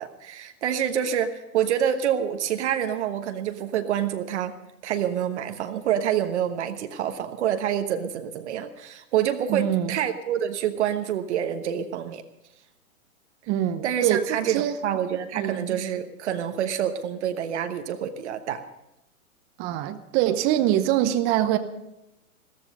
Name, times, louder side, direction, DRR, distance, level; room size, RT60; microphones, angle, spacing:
voice 1, 0.0-4.6 4.8-12.2 13.8-18.6, right 9 dB, 50° right, 7 dB, 1.2 m, -27 dB
voice 2, 9.5-10.0 13.5-14.8 15.4-15.8 19.6-21.6, right 12 dB, 25° right, 9 dB, 0.8 m, -24 dB
15.5 x 14.0 x 5.4 m, 0.90 s
hypercardioid pair, 130°, 43 cm